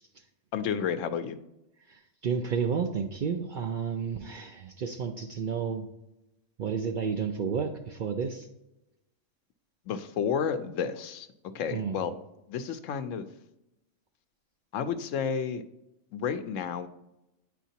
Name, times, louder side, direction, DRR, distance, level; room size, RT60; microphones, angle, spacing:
voice 1, 0.5-1.4 9.9-11.3 11.5-12.1 12.5-13.3 14.7-15.6 16.1-16.9, left 7 dB, 85° left, 10 dB, 1.0 m, -31 dB
voice 2, 1.9-5.9 6.6-8.5 11.7-12.0, right 6 dB, 60° right, 4 dB, 0.5 m, -31 dB
9.0 x 4.5 x 2.8 m, 0.90 s
omnidirectional pair, 1.3 m